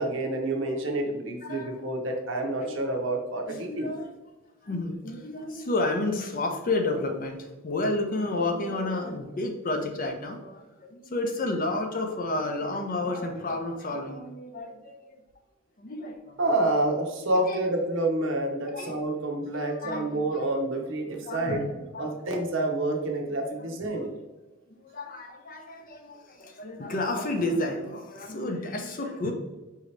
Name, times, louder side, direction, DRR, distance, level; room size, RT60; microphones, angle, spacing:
voice 1, 0.0-3.9 16.4-21.6 22.0-24.2, right 2 dB, 60° right, 2 dB, 0.7 m, -28 dB
voice 2, 1.4-1.9 2.6-2.8 3.5-4.1 4.6-15.2 15.8-16.7 17.4-17.6 18.7-19.0 19.5-20.4 21.2-22.4 23.6-23.7 23.9-24.1 24.7-29.3, left 2 dB, 40° left, 4 dB, 0.5 m, -31 dB
4.9 x 2.8 x 3.2 m, 1.2 s
head